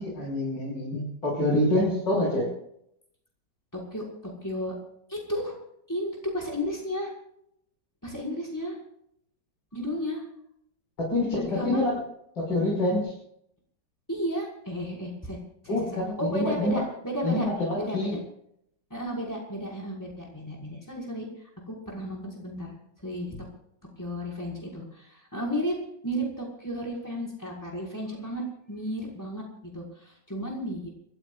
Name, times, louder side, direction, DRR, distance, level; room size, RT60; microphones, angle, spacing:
voice 1, 0.0-2.5 11.0-11.9 12.4-13.1 15.7-16.8 17.2-18.2, left 1 dB, 85° left, -4 dB, 6.9 m, -26 dB
voice 2, 2.1-2.5 3.7-4.7 5.1-5.5 5.9-7.1 8.0-8.8 9.7-10.2 11.5-11.8 14.1-15.4 15.6-15.8 16.2-17.5 17.7-18.2 18.9-22.7 23.0-23.4 24.0-25.7 26.0-30.9, equal, 10° left, -2 dB, 5.8 m, -33 dB
30.0 x 15.0 x 2.5 m, 0.73 s
omnidirectional pair, 1.9 m